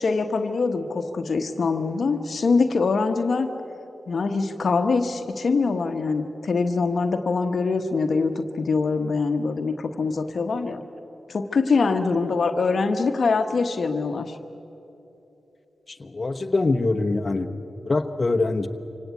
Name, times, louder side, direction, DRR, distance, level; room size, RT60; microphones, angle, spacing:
voice 1, 0.0-3.5 4.1-10.8 11.3-14.3, left 4 dB, 70° left, 7 dB, 1.1 m, -23 dB
voice 2, 15.9-17.5 17.8-18.7, left 3 dB, 40° left, 6 dB, 1.1 m, -24 dB
25.0 x 18.0 x 8.4 m, 3.0 s
cardioid pair, 50°, 0 cm